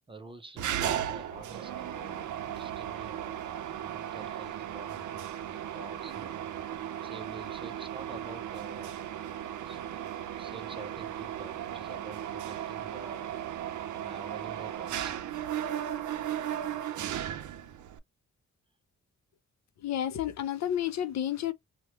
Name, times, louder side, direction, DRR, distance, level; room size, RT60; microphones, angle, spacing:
voice 1, 0.1-5.2 5.5-6.8 7.0-9.0 9.5-9.8 10.3-15.2, right 3 dB, 20° right, 0.5 m, -48 dB
Mechanisms, 0.6-18.0, right 10 dB, 85° right, 0.5 m, -36 dB
voice 2, 19.8-21.5, left 10 dB, 65° left, 0.5 m, -31 dB
3.1 x 2.1 x 2.9 m
wide cardioid pair, 160°, 29 cm